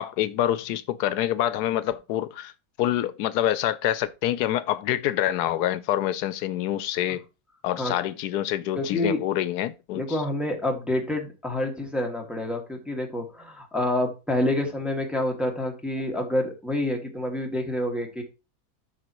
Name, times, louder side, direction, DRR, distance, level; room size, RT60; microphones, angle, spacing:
voice 1, 0.0-2.5 2.8-7.2 7.6-10.2, left 12 dB, 85° left, 1.1 m, -26 dB
voice 2, 8.8-9.3 9.9-18.2, left 1 dB, ahead, 1.7 m, -28 dB
12.5 x 4.9 x 3.0 m
omnidirectional pair, 1.7 m